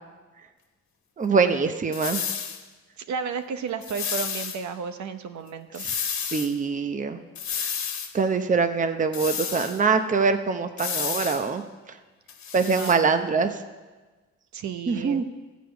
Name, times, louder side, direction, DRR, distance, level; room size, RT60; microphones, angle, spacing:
voice 1, 1.2-2.2 5.8-5.9 6.3-7.2 8.1-11.6 12.5-13.5 14.9-15.2, right 5 dB, 25° right, 8 dB, 0.7 m, -23 dB
sound 1, 1.9-2.6 3.8-4.6 5.8-6.5 7.4-8.1 9.1-9.8 10.8-11.5 12.3-13.0, left 7 dB, 65° left, 1.3 m, -31 dB
voice 2, 3.0-5.8 12.6-13.3 14.5-15.2, right 6 dB, 70° right, 8 dB, 0.9 m, -33 dB
14.0 x 5.1 x 8.0 m, 1.3 s
cardioid pair, 90°, 30 cm